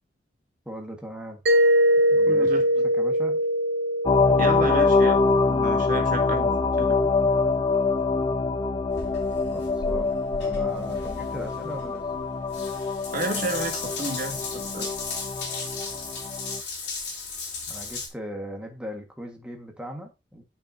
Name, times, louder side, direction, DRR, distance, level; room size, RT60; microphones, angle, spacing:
voice 1, 0.6-1.4 2.1-2.7 2.9-3.4 9.5-12.0 17.7-20.4, equal, 5° right, 1.4 m, -38 dB
Mallet percussion, 1.5-6.1, equal, 65° right, 0.7 m, -23 dB
voice 2, 2.3-2.6 4.4-5.2 5.5-7.1 13.1-14.9, right 2 dB, 50° right, 1.7 m, -31 dB
sound 1, 4.1-16.6, left 4 dB, 25° left, 0.5 m, -24 dB
Water tap faucet / Bathtub (filling or washing) / Drip, 8.9-18.1, left 4 dB, 70° left, 3.7 m, -36 dB
10.0 x 6.2 x 2.6 m
head